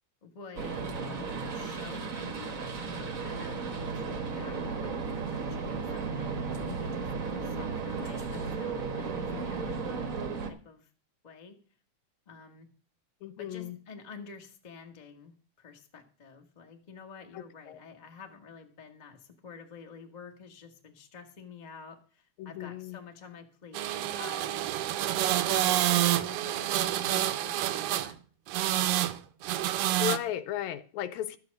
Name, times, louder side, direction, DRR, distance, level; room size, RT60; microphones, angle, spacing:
voice 1, 0.2-0.9 1.5-2.6 2.9-10.1 10.4-10.9 11.2-11.6 12.3-12.7 13.4-24.7 25.5-28.2, left 5 dB, 35° left, 0.6 m, -49 dB
sound 1, 0.6-10.5, right 4 dB, 55° right, 0.9 m, -34 dB
voice 2, 13.2-13.8 17.7-17.8 22.4-23.0 30.0-31.4, left 12 dB, 80° left, 2.0 m, -35 dB
sound 2, 23.7-28.1 28.5-29.2 29.4-30.2, right 13 dB, 85° right, 1.3 m, -28 dB
12.0 x 7.7 x 5.2 m
omnidirectional pair, 3.4 m